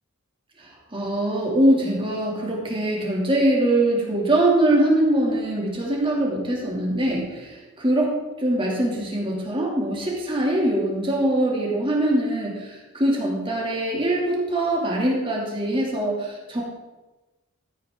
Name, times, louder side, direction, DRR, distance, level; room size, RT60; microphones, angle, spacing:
voice 1, 0.6-8.1 8.4-16.6, right 1 dB, 25° right, -3 dB, 2.6 m, -23 dB
13.5 x 9.0 x 3.8 m, 1.1 s
head